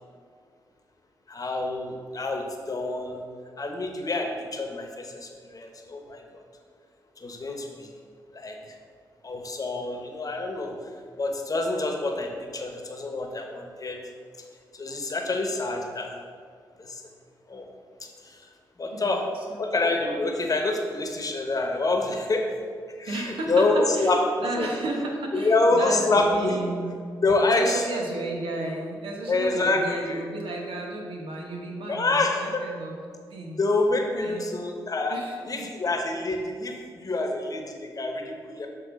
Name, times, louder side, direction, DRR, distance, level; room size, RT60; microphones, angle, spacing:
voice 1, 1.3-3.2 3.6-6.4 7.2-7.9 8.3-8.5 9.2-10.8 11.2-14.0 14.7-16.2 16.8-17.0 17.5-17.7 18.0-18.5 18.8-19.2 19.6-22.5 23.0-24.2 24.6-24.7 25.3-26.6 27.2-27.9 29.3-30.2 31.9-32.6 33.5-35.2 35.5-38.7, left 2 dB, 40° left, 2 dB, 1.1 m, -27 dB
voice 2, 18.9-19.7 23.0-24.1 24.4-27.0 27.4-33.0 33.3-33.6 34.2-34.6 35.1-35.7, right 2 dB, 70° right, -1 dB, 1.1 m, -33 dB
7.3 x 3.2 x 5.1 m, 2.1 s
hypercardioid pair, 45°, 9 cm